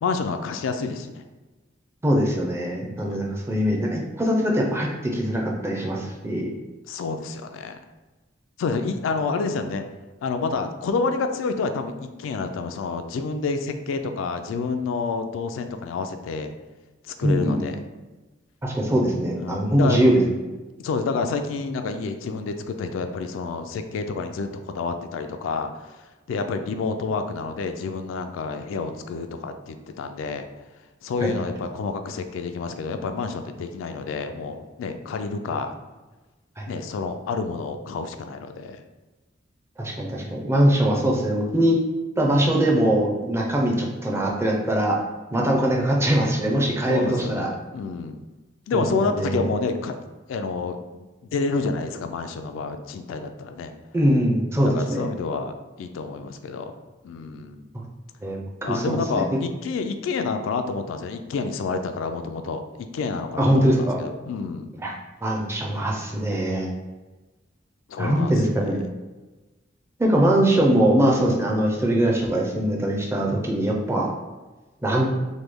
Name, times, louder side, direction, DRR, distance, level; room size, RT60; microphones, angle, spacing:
voice 1, 0.0-1.2 3.0-3.2 6.9-7.8 8.6-9.8 10.2-11.9 12.2-16.5 17.2-17.8 19.4-20.3 20.8-25.7 26.3-30.5 31.0-35.7 36.7-38.8 46.9-48.2 48.7-50.0 50.3-51.1 51.3-53.7 54.6-56.8 57.0-57.6 58.6-62.6 62.9-64.7 67.9-68.3, left 4 dB, 90° left, 7 dB, 0.3 m, -28 dB
voice 2, 2.0-6.5 17.2-17.7 18.6-20.2 31.2-31.3 35.5-35.6 36.6-36.7 39.8-41.8 42.2-45.0 45.3-47.5 48.7-48.8 49.2-49.4 53.9-55.1 57.7-57.8 58.2-59.2 63.4-64.0 64.8-64.9 65.2-66.7 68.0-68.8 70.0-74.1 74.8-75.1, right 1 dB, 15° right, -1 dB, 0.4 m, -22 dB
3.1 x 2.2 x 3.4 m, 1.2 s
head